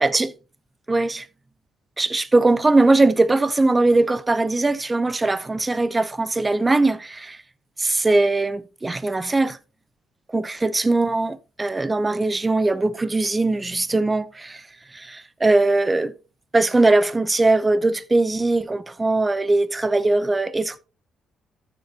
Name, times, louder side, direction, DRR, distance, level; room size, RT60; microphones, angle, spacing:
voice 1, 0.0-0.3 0.9-1.3 2.0-7.4 7.8-9.6 10.3-14.6 14.9-16.1 16.5-20.8, right 2 dB, 20° right, 0.7 m, -20 dB
13.5 x 6.9 x 2.9 m
cardioid pair, 90°, 0 cm